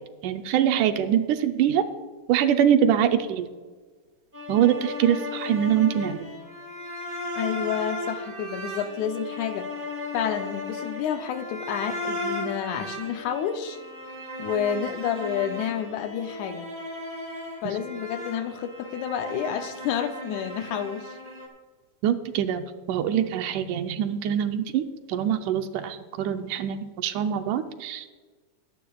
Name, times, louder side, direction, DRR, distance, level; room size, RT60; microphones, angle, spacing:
voice 1, 0.2-1.8 2.3-3.5 4.5-6.2 22.0-24.8 25.1-28.1, right 9 dB, 80° right, 8 dB, 2.0 m, -24 dB
Synthethic Violin, 4.3-21.5, left 2 dB, 20° right, 1.7 m, -36 dB
voice 2, 7.4-9.7 10.1-13.8 14.4-16.7 17.6-21.2, left 8 dB, 75° left, 7 dB, 1.9 m, -29 dB
22.0 x 10.0 x 2.3 m, 1.4 s
omnidirectional pair, 3.8 m